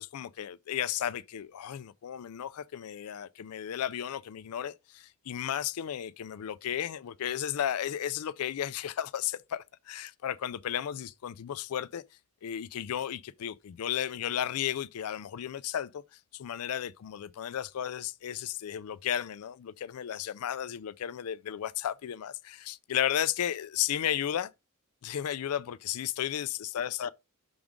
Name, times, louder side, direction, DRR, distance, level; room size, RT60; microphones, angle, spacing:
voice 1, 0.0-12.0 12.4-16.0 16.3-24.5 25.0-27.1, left 10 dB, 85° left, 0.4 m, -34 dB
6.0 x 3.6 x 5.1 m
head